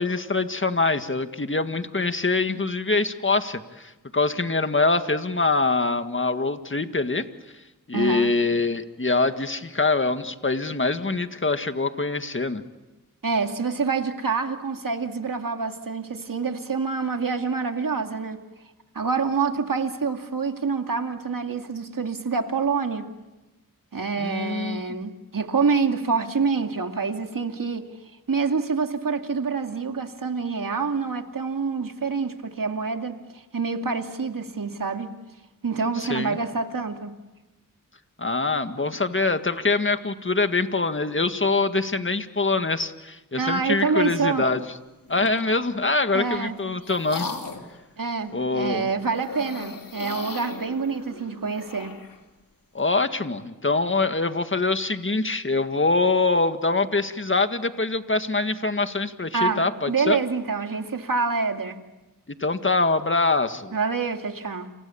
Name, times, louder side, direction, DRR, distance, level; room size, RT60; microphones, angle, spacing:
voice 1, 0.0-7.3 7.9-12.6 24.2-24.8 36.0-36.4 38.2-44.7 45.1-47.3 48.3-48.9 52.7-60.2 62.3-63.8, left 3 dB, 35° left, 1.8 m, -24 dB
voice 2, 7.9-8.3 13.2-18.4 18.9-23.1 23.9-27.9 28.3-35.1 35.6-37.2 43.4-44.5 46.1-46.6 48.0-51.9 59.3-61.8 63.7-64.7, right 5 dB, 75° right, 2.3 m, -26 dB
sound 1, 45.1-45.7 46.3-47.8 49.1-52.2, left 4 dB, 75° left, 3.2 m, -37 dB
30.0 x 28.0 x 7.1 m
wide cardioid pair, 55°, 34 cm